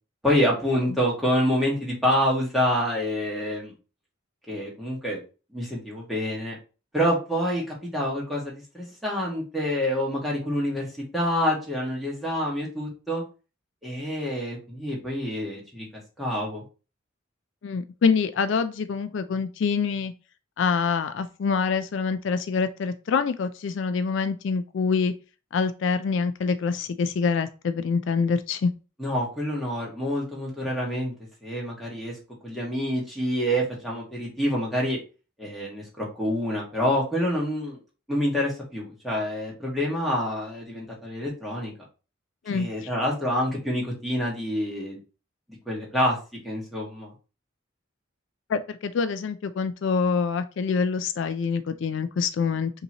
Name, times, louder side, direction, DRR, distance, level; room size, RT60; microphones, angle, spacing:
voice 1, 0.2-3.7 4.5-5.2 5.5-6.6 6.9-10.9 11.1-13.2 13.8-15.9 16.2-16.6 29.0-31.1 31.4-32.1 32.4-35.0 35.4-37.8 38.1-41.7 42.5-45.0 45.6-46.2 46.4-47.1, equal, ahead, -5 dB, 1.5 m, -27 dB
voice 2, 17.6-20.1 20.6-25.1 25.5-28.7 42.5-42.9 48.5-52.7, left 5 dB, 65° left, 10 dB, 0.3 m, -25 dB
5.3 x 2.9 x 2.8 m, 0.33 s
head